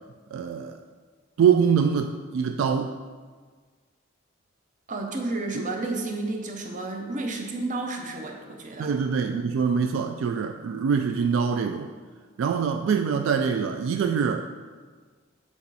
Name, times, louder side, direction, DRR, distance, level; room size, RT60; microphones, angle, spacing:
voice 1, 0.3-0.8 1.4-2.9 8.8-11.9 12.4-14.4, right 6 dB, 75° right, 6 dB, 0.3 m, -24 dB
voice 2, 4.9-8.9, right 2 dB, 40° right, 2 dB, 0.7 m, -31 dB
7.0 x 4.1 x 4.1 m, 1.5 s
head